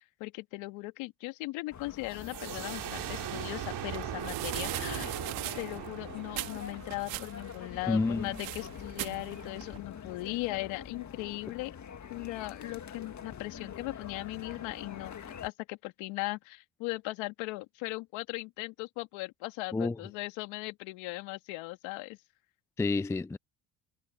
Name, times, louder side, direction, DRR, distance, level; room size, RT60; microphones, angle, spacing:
voice 1, 0.2-5.2 5.6-11.7 12.1-22.2, left 22 dB, 80° left, 2.3 m, -38 dB
sound 1, 1.7-15.5, left 7 dB, 35° left, 2.1 m, -45 dB
sound 2, 2.1-7.6, right 13 dB, 60° right, 3.7 m, -39 dB
sound 3, 2.9-9.8, right 25 dB, 85° right, 3.7 m, -42 dB
voice 2, 7.9-8.4 19.7-20.0 22.8-23.4, left 3 dB, 5° left, 0.4 m, -29 dB
supercardioid pair, 75°, 46 cm